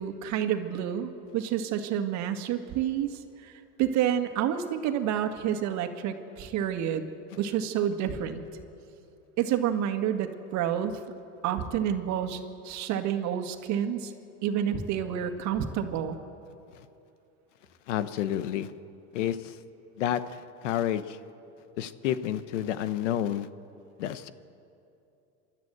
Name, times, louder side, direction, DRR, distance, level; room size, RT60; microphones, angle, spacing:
voice 1, 0.0-7.1 7.4-8.4 9.4-11.0 11.4-14.1 14.4-16.2, right 9 dB, 50° right, 7 dB, 1.8 m, -29 dB
voice 2, 17.9-18.7 19.1-19.6 20.0-21.2 21.8-23.5 24.0-24.3, left 11 dB, 90° left, 13 dB, 1.1 m, -30 dB
28.0 x 12.5 x 8.0 m, 2.7 s
supercardioid pair, 125°, 36 cm